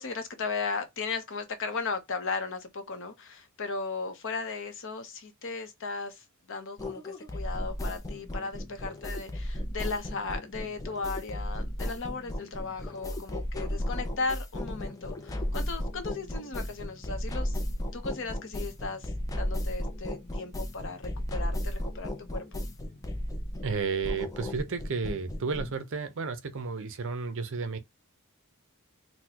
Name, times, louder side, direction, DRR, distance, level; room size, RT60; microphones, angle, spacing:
voice 1, 0.0-17.6 17.9-22.6, left 4 dB, 60° left, 0.8 m, -36 dB
sound 1, 6.8-25.8, left 1 dB, 15° left, 0.5 m, -34 dB
voice 2, 23.6-27.8, right 5 dB, 60° right, 0.6 m, -32 dB
4.0 x 2.2 x 2.8 m
head